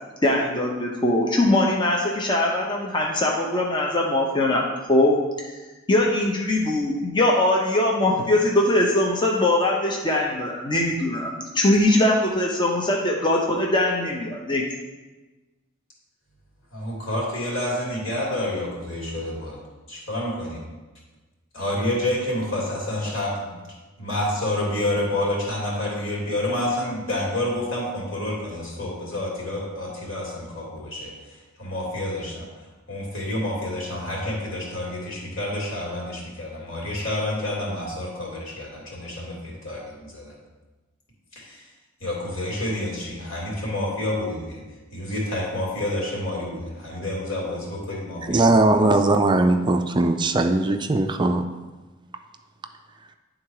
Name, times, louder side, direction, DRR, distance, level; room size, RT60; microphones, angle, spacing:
voice 1, 0.2-4.6 4.9-5.2 5.9-14.6, left 1 dB, 25° left, -1 dB, 0.7 m, -21 dB
voice 2, 16.7-19.6 19.9-20.6 21.5-23.5 24.0-31.2 31.6-32.5 32.9-40.4 41.3-41.7 42.0-44.6 44.9-48.5, left 1 dB, 70° left, -4 dB, 2.7 m, -28 dB
voice 3, 48.3-51.4, right 2 dB, 25° right, 6 dB, 0.4 m, -19 dB
10.0 x 3.8 x 4.7 m, 1.2 s
head